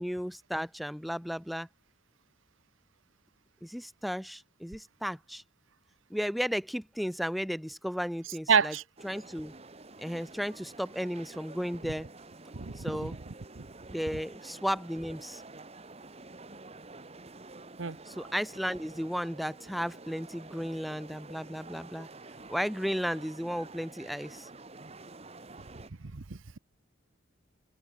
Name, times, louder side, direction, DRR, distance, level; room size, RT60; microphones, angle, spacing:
voice 1, 0.0-1.7 3.6-5.4 6.1-8.7 9.0-9.5 10.0-12.1 12.8-13.1 13.9-15.4 18.1-22.1 22.5-24.5, equal, ahead, 0.4 m, -34 dB
voice 2, 8.5-8.8 12.5-13.2 13.6-13.7 17.8-18.0 26.1-26.6, right 6 dB, 85° right, 0.9 m, -28 dB
sound 1, 9.0-25.9, right 3 dB, 30° right, 1.5 m, -49 dB
head